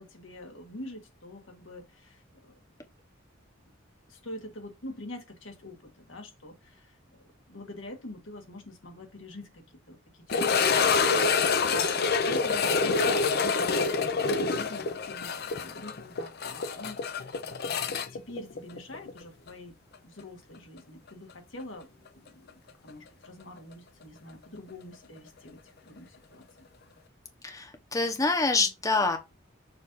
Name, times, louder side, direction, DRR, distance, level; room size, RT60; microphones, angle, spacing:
voice 1, 0.0-2.5 4.1-7.0 7.5-11.9 12.2-17.3 17.8-19.7 20.0-21.9 22.1-22.5 22.8-26.4, left 1 dB, 80° left, 1.7 m, -45 dB
sound 1, 10.3-19.2 19.5-19.6 20.2-20.3 22.9-23.0, left 5 dB, 55° left, 0.7 m, -26 dB
voice 2, 27.4-29.2, left 3 dB, 15° left, 0.9 m, -26 dB
6.6 x 2.7 x 5.4 m
head